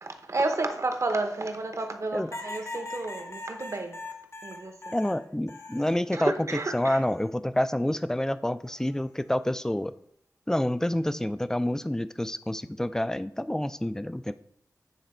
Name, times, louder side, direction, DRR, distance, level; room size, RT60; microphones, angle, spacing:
voice 1, 0.0-4.0 4.4-4.8 6.1-7.0, right 2 dB, 50° right, 5 dB, 0.9 m, -31 dB
sound 1, 2.3-6.0 6.5-7.3 8.6-9.1, left 2 dB, 45° left, 0.9 m, -41 dB
voice 2, 4.9-6.3 6.7-9.9 10.5-14.3, left 1 dB, 10° left, 13 dB, 0.3 m, -28 dB
9.1 x 3.4 x 4.3 m, 0.70 s
wide cardioid pair, 70°, 6 cm